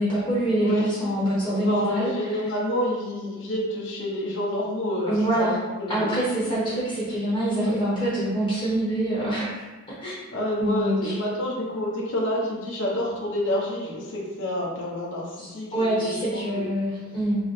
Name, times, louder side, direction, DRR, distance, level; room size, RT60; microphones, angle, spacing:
voice 1, 0.0-2.4 5.1-5.6 5.9-9.6 10.0-10.1 10.6-11.4 15.4-17.5, right 1 dB, 20° left, -9 dB, 1.1 m, -25 dB
voice 2, 0.5-1.1 1.5-5.5 5.8-6.1 7.6-7.8 10.3-16.6, left 1 dB, 60° left, -4 dB, 1.0 m, -28 dB
3.9 x 3.1 x 3.3 m, 1.2 s
head